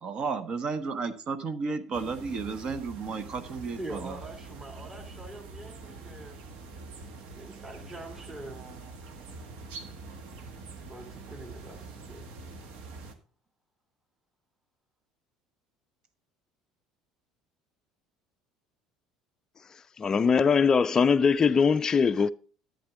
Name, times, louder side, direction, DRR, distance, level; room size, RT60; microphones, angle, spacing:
voice 1, 0.0-4.2, right 4 dB, 45° right, 1.1 m, -33 dB
sound 1, 1.9-13.1, right 3 dB, 60° right, 1.4 m, -45 dB
voice 2, 3.8-6.4 7.4-8.6 10.9-12.3, right 2 dB, 25° right, 2.3 m, -43 dB
voice 3, 20.0-22.3, left 6 dB, 30° left, 0.4 m, -22 dB
11.5 x 8.1 x 3.6 m
hypercardioid pair, 65°, 2 cm